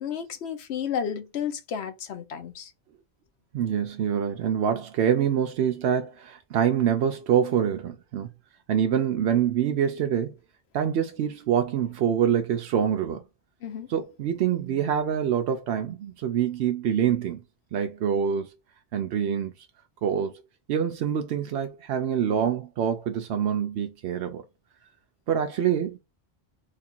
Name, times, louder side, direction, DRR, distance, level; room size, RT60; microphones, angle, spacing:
voice 1, 0.0-2.7 13.6-13.9, left 8 dB, 80° left, 1.0 m, -32 dB
voice 2, 3.5-8.3 8.7-10.3 10.7-13.2 13.9-17.4 17.7-18.5 18.9-19.5 20.0-20.4 20.7-24.4 25.3-26.0, right 8 dB, 90° right, 0.8 m, -25 dB
3.1 x 2.5 x 4.3 m
omnidirectional pair, 1.1 m